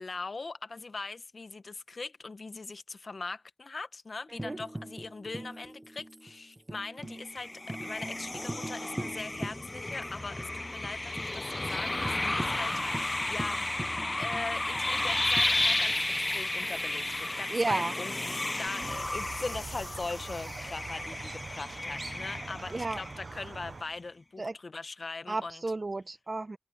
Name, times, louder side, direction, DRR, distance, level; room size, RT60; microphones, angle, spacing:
voice 1, 0.0-13.6 14.2-25.6, left 3 dB, 70° left, 0.9 m, -41 dB
Tambourine, 4.4-10.1 10.4-10.5 10.8-11.3 11.6-11.8 12.1-16.2 17.7-18.7, right 1 dB, 25° right, 0.8 m, -42 dB
sound 1, 7.2-23.5, left 2 dB, 35° left, 0.5 m, -33 dB
voice 2, 17.5-17.9 22.7-23.0 24.4-24.5 25.3-26.6, right 2 dB, 50° right, 1.0 m, -32 dB
Squeak, 18.8-23.8, right 4 dB, 75° right, 0.5 m, -43 dB
cardioid pair, 45°, 0 cm